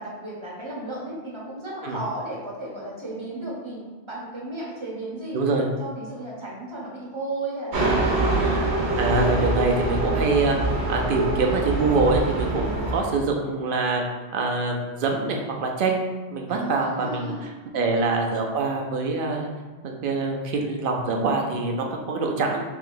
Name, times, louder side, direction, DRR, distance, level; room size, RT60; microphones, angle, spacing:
voice 1, 0.0-3.8 4.1-8.6 16.5-17.4 17.7-18.0, right 2 dB, 30° right, -4 dB, 0.8 m, -34 dB
voice 2, 5.3-5.7 8.1-8.7 9.0-10.6 10.9-14.0 14.3-17.3 17.7-19.5 19.8-22.6, right 3 dB, 60° right, 1 dB, 0.7 m, -25 dB
sound 1, 7.7-13.0, right 2 dB, 75° right, 1.0 m, -24 dB
3.4 x 2.8 x 3.7 m, 1.2 s
omnidirectional pair, 1.1 m